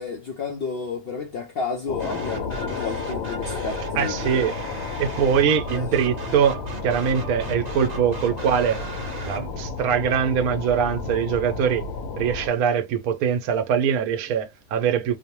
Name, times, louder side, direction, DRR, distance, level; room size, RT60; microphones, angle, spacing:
voice 1, 0.0-4.5 5.7-5.9, left 4 dB, 70° left, 0.5 m, -32 dB
sound 1, 1.9-12.5, left 4 dB, 85° left, 1.1 m, -32 dB
sound 2, 2.0-9.6, right 3 dB, 40° right, 0.6 m, -37 dB
voice 2, 4.0-4.6 5.0-8.8 9.2-11.8 12.2-15.2, right 7 dB, 80° right, 1.0 m, -23 dB
2.7 x 2.1 x 2.8 m
omnidirectional pair, 1.5 m